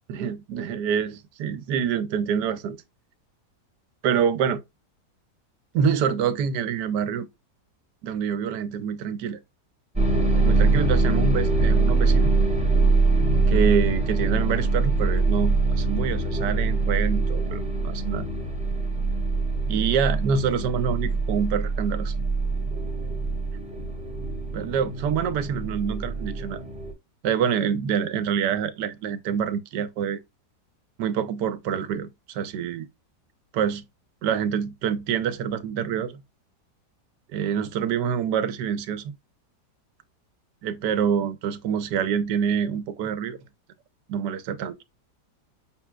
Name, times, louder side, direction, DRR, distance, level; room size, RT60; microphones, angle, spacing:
voice 1, 0.1-2.8 4.0-4.6 5.7-7.3 8.0-9.4 10.3-12.3 13.5-18.3 19.7-22.1 24.5-26.6 27.2-30.2 31.0-32.9 33.5-33.8 34.2-36.2 37.3-39.1 40.6-43.4 44.1-44.8, right 7 dB, 85° right, 1.2 m, -26 dB
sound 1, 9.9-26.9, right 3 dB, 5° right, 1.0 m, -23 dB
7.1 x 2.4 x 2.2 m
omnidirectional pair, 1.8 m